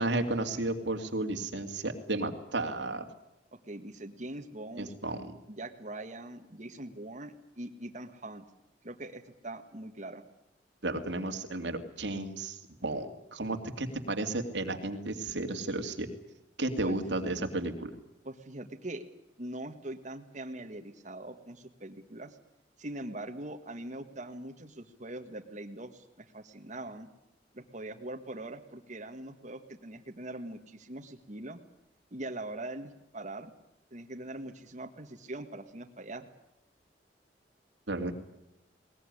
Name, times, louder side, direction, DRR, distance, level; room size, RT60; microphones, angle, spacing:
voice 1, 0.0-3.1 4.8-5.3 10.8-16.1 16.6-17.9 37.9-38.1, right 2 dB, 90° right, 5 dB, 2.6 m, -33 dB
voice 2, 3.6-4.9 5.5-8.4 8.8-10.2 16.8-16.9 18.2-19.0 19.4-22.4 22.8-27.1 27.5-31.6 32.1-33.5 33.9-36.3, right 1 dB, 45° right, 4 dB, 1.6 m, -42 dB
21.0 x 19.5 x 9.9 m, 0.86 s
head